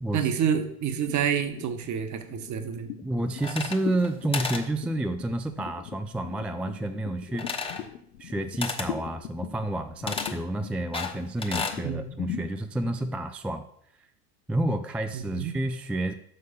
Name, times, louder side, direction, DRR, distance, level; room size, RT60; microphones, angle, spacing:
voice 1, 0.1-2.9 11.8-12.0 15.1-15.5, right 8 dB, 40° right, 8 dB, 1.2 m, -28 dB
sound 1, 1.1-13.3, left 9 dB, 80° left, 0.8 m, -41 dB
voice 2, 3.0-7.5 8.2-13.6 14.5-16.1, right 1 dB, 5° right, 8 dB, 0.3 m, -30 dB
sound 2, 3.4-4.1 4.3-4.7 7.4-7.9 8.6-8.9 10.1-10.4 10.9-11.8, left 4 dB, 10° left, 1.1 m, -32 dB
6.7 x 6.4 x 5.2 m, 0.70 s
hypercardioid pair, 85°, 43 cm